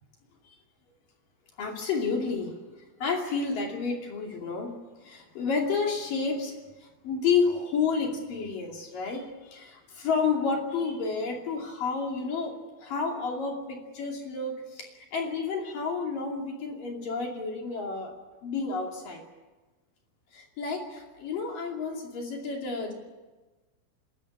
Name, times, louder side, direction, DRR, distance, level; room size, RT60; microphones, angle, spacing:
voice 1, 1.6-2.5 3.0-4.7 5.0-6.5 6.8-18.1 18.4-19.2 20.3-22.9, left 5 dB, 50° left, 1 dB, 3.7 m, -30 dB
27.0 x 14.0 x 9.9 m, 1.2 s
omnidirectional pair, 5.9 m